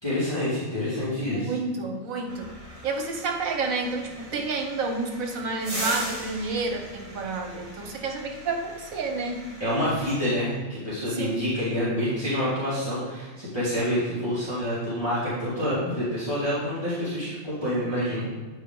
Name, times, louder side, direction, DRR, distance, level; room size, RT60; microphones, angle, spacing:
voice 1, 0.0-1.5 9.6-18.3, equal, 20° left, -11 dB, 2.3 m, -27 dB
voice 2, 1.3-2.5 2.8-9.5 11.1-11.4, right 3 dB, 80° right, 3 dB, 1.4 m, -30 dB
sound 1, 2.3-10.6, right 1 dB, 25° right, 2.1 m, -39 dB
8.4 x 5.1 x 3.8 m, 1.3 s
omnidirectional pair, 1.4 m